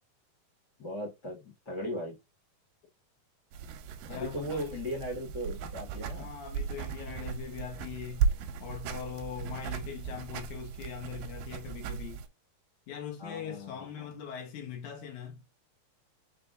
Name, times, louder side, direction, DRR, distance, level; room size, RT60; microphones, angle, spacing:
voice 1, 0.8-1.4 1.7-2.1 4.1-6.3 13.2-14.1, equal, 35° left, 1.9 m, -37 dB
sound 1, 3.5-12.3, right 6 dB, 85° right, 2.3 m, -36 dB
voice 2, 4.1-4.8 6.1-8.3 8.6-12.2 12.9-15.4, left 8 dB, 65° left, 2.3 m, -41 dB
5.7 x 3.7 x 2.5 m
omnidirectional pair, 4.0 m